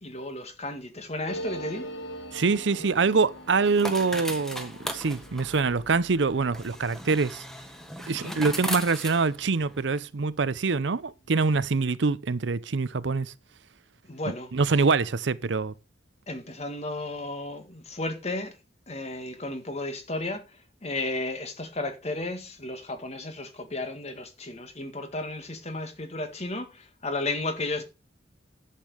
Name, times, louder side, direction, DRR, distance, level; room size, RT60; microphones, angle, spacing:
voice 1, 0.0-1.9 8.1-8.4 14.1-14.5 16.3-18.6 18.9-27.8, left 2 dB, 35° left, 2.0 m, -34 dB
sound 1, 1.3-10.4 10.7-10.8 11.0-11.6, equal, 85° left, 2.1 m, -43 dB
sound 2, 2.3-10.0, equal, ahead, 1.4 m, -38 dB
voice 2, 2.3-7.4 8.1-13.3 14.5-15.7, right 4 dB, 70° right, 0.6 m, -25 dB
10.5 x 8.4 x 5.0 m
head